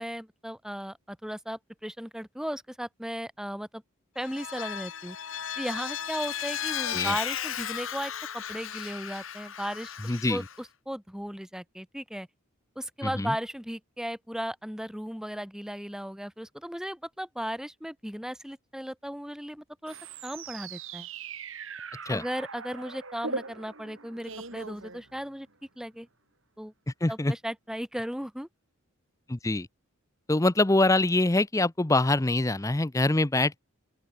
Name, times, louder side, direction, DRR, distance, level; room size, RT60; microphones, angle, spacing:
voice 1, 0.0-3.8 4.1-5.2 5.6-12.3 12.7-20.0 20.2-21.1 22.1-25.5 25.8-26.1 26.6-26.7 27.1-28.5, equal, ahead, 1.3 m, -36 dB
Vehicle, 4.2-10.6, left 9 dB, 65° left, 1.4 m, -35 dB
voice 2, 10.1-10.4 13.0-13.3 22.1-22.2 27.0-27.3 29.3-29.7 30.3-33.6, left 2 dB, 15° left, 0.6 m, -24 dB
sound 1, 19.9-25.5, right 4 dB, 60° right, 4.4 m, -40 dB
open air
head